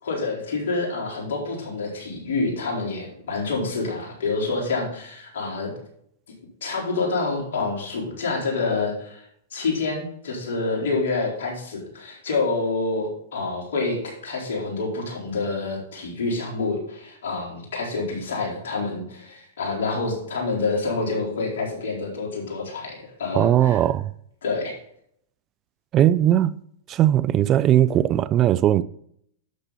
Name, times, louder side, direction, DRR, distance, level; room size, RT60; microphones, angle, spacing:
voice 1, 0.0-5.7 6.6-23.8 24.4-24.7, left 3 dB, 75° left, 4.3 m, -27 dB
voice 2, 23.3-24.1 25.9-26.6 26.9-28.8, right 12 dB, 35° right, 0.4 m, -19 dB
11.5 x 6.7 x 4.2 m
hypercardioid pair, 115°, 0 cm